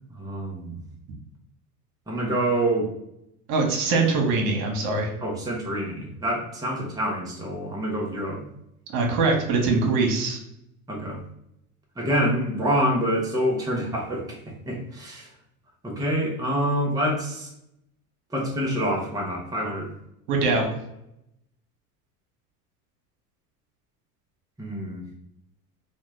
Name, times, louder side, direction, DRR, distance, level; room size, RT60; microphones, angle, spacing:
voice 1, 0.1-0.8 2.1-2.9 5.2-8.5 10.9-11.2 12.0-15.3 15.8-17.5 18.3-19.9 24.6-25.0, equal, 10° right, -2 dB, 0.8 m, -26 dB
voice 2, 3.5-5.1 8.9-10.4 20.3-20.7, right 3 dB, 65° right, 2 dB, 1.0 m, -22 dB
3.0 x 2.2 x 3.1 m, 0.80 s
hypercardioid pair, 75°, 48 cm